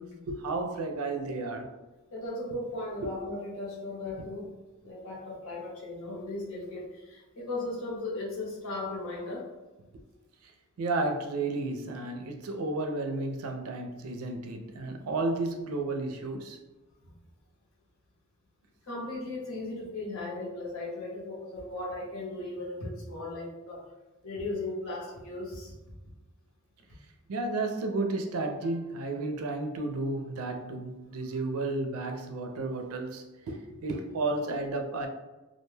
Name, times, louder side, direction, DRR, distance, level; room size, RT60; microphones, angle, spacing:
voice 1, 0.0-1.8 3.0-3.1 10.8-16.6 27.3-35.1, right 2 dB, 90° right, 0.4 m, -32 dB
voice 2, 2.1-4.5 4.8-9.4 18.9-23.8 24.2-25.7, left 2 dB, 75° left, 1.0 m, -37 dB
2.4 x 2.2 x 3.1 m
head